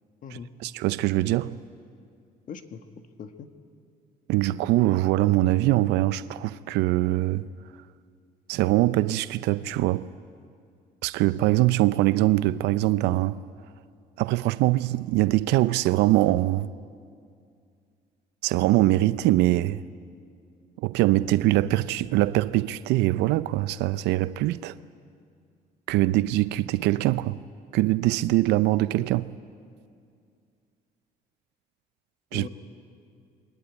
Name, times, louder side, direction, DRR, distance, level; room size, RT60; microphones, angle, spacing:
voice 1, 0.6-1.6 4.3-7.5 8.5-10.1 11.0-13.4 14.2-16.7 18.4-19.8 20.8-24.8 25.9-27.4 27.7-29.3 32.3-32.5, right 16 dB, 85° right, 0.5 m, -23 dB
voice 2, 2.5-2.8 3.2-3.5 32.3-32.5, left 6 dB, 50° left, 1.6 m, -39 dB
23.0 x 19.0 x 9.5 m
cardioid pair, 110°, 17 cm